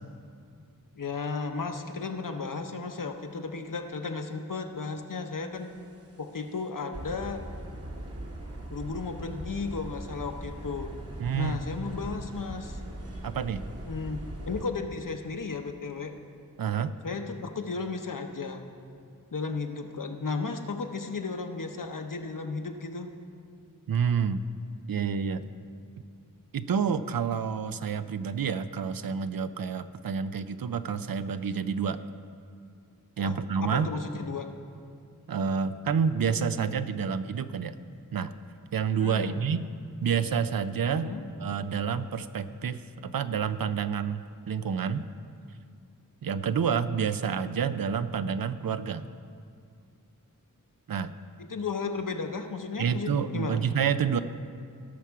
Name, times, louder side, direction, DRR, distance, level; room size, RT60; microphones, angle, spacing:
voice 1, 1.0-5.7 6.2-7.4 8.7-10.9 11.4-12.8 13.8-16.1 17.0-18.7 19.3-23.1 33.2-33.3 33.6-34.5 38.9-39.4 40.9-41.2 51.4-53.6, left 4 dB, 65° left, 5 dB, 0.9 m, -34 dB
sound 1, 5.7-6.0 6.5-6.6 6.9-14.6, right 1 dB, 45° right, 1.3 m, -40 dB
voice 2, 11.2-11.6 13.2-13.6 16.6-16.9 23.9-24.4 24.9-25.4 26.5-32.0 33.2-33.9 35.3-37.7 38.1-38.3 38.7-39.7 40.0-41.1 41.4-45.1 46.2-49.1 50.9-51.1 52.8-54.2, right 6 dB, 85° right, 12 dB, 0.5 m, -28 dB
18.0 x 6.1 x 4.7 m, 2.3 s
wide cardioid pair, 45°, 34 cm